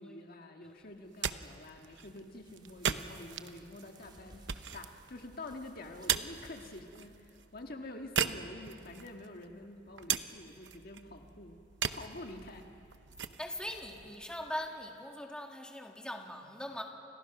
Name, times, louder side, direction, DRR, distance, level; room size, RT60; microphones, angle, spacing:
voice 1, 0.0-4.4 4.7-11.6 11.9-12.9, left 2 dB, 55° left, 3 dB, 1.7 m, -47 dB
sound 1, 0.9-14.9, right 8 dB, 80° right, 0.8 m, -40 dB
sound 2, 2.0-6.8, right 1 dB, 25° right, 3.0 m, -59 dB
voice 2, 13.4-16.8, left 1 dB, 5° left, 2 dB, 2.0 m, -41 dB
30.0 x 26.0 x 6.0 m, 2.8 s
head